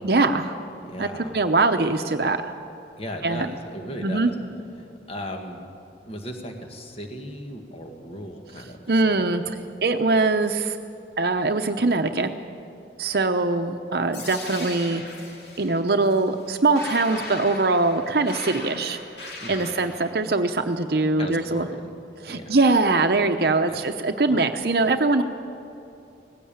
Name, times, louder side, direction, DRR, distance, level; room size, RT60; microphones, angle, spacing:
voice 1, 0.0-0.6 1.0-1.1 1.3-2.4 3.2-3.5 4.0-4.3 8.9-9.4 9.8-10.8 11.2-12.3 13.0-15.0 15.6-19.0 19.5-21.7 22.2-25.2, right 3 dB, 60° right, 6 dB, 0.8 m, -22 dB
voice 2, 0.9-1.4 3.0-4.3 4.8-5.6 6.0-9.3 19.4-19.8 21.2-21.8 22.3-22.5 23.7-23.8 24.2-24.4, equal, 35° left, 4 dB, 1.6 m, -37 dB
sound 1, 14.1-20.1, left 2 dB, 65° left, 2.5 m, -38 dB
19.0 x 16.0 x 8.8 m, 2.7 s
head